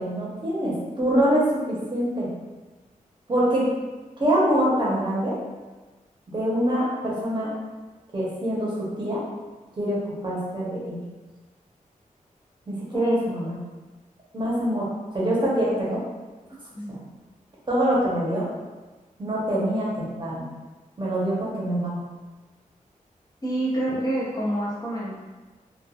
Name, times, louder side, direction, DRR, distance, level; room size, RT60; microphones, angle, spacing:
voice 1, 0.0-2.3 3.3-3.6 4.2-5.3 6.3-7.5 8.1-9.2 9.8-11.0 12.7-13.6 14.3-14.9 15.1-16.0 16.9-17.0 17.7-18.4 19.2-20.5 21.0-22.0 23.9-24.0, right 1 dB, 35° right, -6 dB, 0.8 m, -24 dB
voice 2, 23.4-25.2, right 1 dB, 30° left, -6 dB, 0.6 m, -27 dB
2.9 x 2.3 x 2.3 m, 1.3 s
wide cardioid pair, 120°, 14 cm